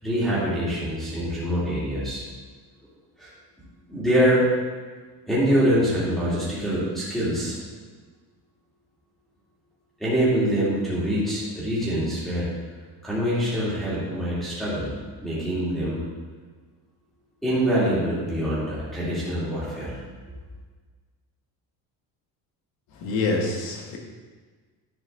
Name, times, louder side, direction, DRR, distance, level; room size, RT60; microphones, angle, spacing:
voice 1, 0.0-2.2 3.2-3.3 3.9-4.5 5.3-7.6 10.0-12.5 13.0-16.0 17.4-20.0, equal, ahead, -10 dB, 2.4 m, -24 dB
voice 2, 22.9-24.0, left 3 dB, 65° left, 1 dB, 1.7 m, -26 dB
10.5 x 6.1 x 3.9 m, 1.4 s
cardioid pair, 175°, 38 cm